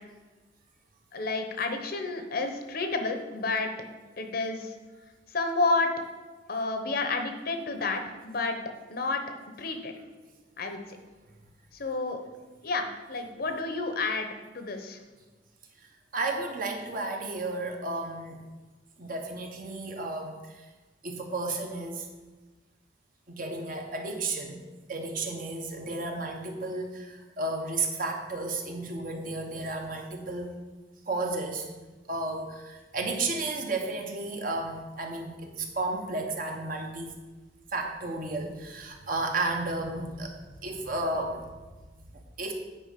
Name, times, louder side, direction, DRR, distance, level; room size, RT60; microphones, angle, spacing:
voice 1, 1.1-3.7 4.2-4.7 5.3-5.9 6.5-8.6 8.9-9.2 9.6-9.9 10.6-11.0 11.7-12.2 12.6-14.3 14.5-15.0, left 3 dB, 55° left, 6 dB, 0.8 m, -30 dB
voice 2, 15.8-18.4 19.0-20.7 21.0-22.1 23.3-24.6 24.9-30.6 31.0-31.7 32.1-37.1 37.7-41.4 41.9-42.5, right 2 dB, 50° right, 2 dB, 1.1 m, -33 dB
8.9 x 5.0 x 5.1 m, 1.2 s
head